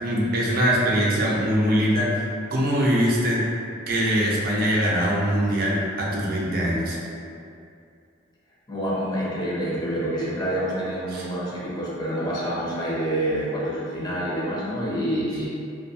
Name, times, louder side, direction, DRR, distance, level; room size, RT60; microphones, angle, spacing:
voice 1, 0.0-2.1 2.5-3.4 3.9-7.0 11.1-11.2, equal, 50° right, -4 dB, 0.4 m, -22 dB
voice 2, 8.7-15.5, right 1 dB, 20° left, -7 dB, 0.5 m, -27 dB
2.6 x 2.2 x 2.6 m, 2.5 s
head